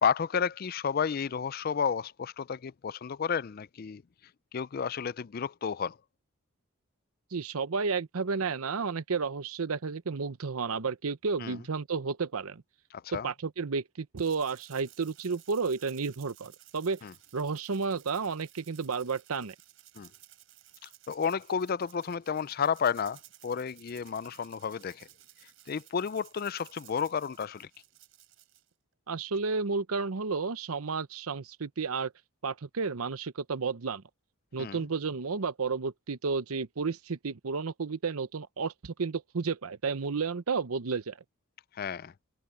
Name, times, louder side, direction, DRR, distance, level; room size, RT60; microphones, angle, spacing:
voice 1, 0.0-4.0 4.5-6.0 11.4-11.6 12.9-13.3 17.0-17.1 20.0-20.1 21.1-25.1 25.7-27.7 34.6-34.8 41.8-42.1, left 6 dB, 45° left, 0.4 m, -31 dB
voice 2, 7.3-12.6 13.1-17.0 17.3-19.5 29.1-32.1 32.4-34.0 34.5-41.2, right 4 dB, 85° right, 0.8 m, -32 dB
Rattle (instrument), 14.2-28.7, right 15 dB, 65° right, 4.6 m, -57 dB
head